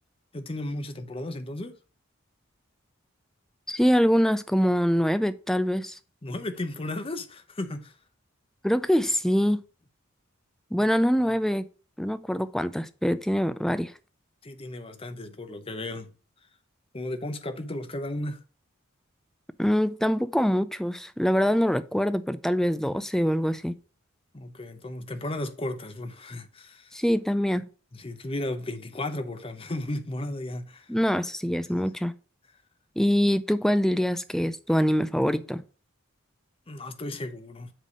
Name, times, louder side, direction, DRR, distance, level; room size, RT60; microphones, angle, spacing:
voice 1, 0.3-1.7 6.2-7.9 10.8-10.9 14.4-16.1 16.9-18.4 24.3-26.9 27.9-30.9 36.7-37.7, left 1 dB, 25° left, 0.7 m, -34 dB
voice 2, 3.7-6.0 8.6-9.6 10.7-11.7 12.0-13.9 19.6-23.7 26.9-27.6 30.9-32.1 33.0-35.6, equal, ahead, 0.3 m, -24 dB
7.5 x 3.4 x 5.2 m
head